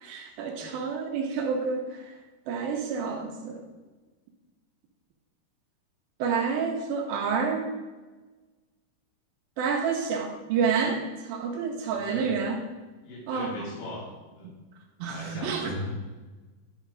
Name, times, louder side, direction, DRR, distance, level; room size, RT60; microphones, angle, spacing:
voice 1, 0.0-2.2 2.5-3.6 6.2-7.7 9.6-12.6 13.3-13.5 15.0-15.7, right 5 dB, 75° right, 2 dB, 2.3 m, -29 dB
voice 2, 11.9-12.4 13.0-14.1 14.4-14.5 15.1-15.9, left 1 dB, 55° left, -7 dB, 3.7 m, -38 dB
10.0 x 4.3 x 5.0 m, 1.3 s
omnidirectional pair, 4.7 m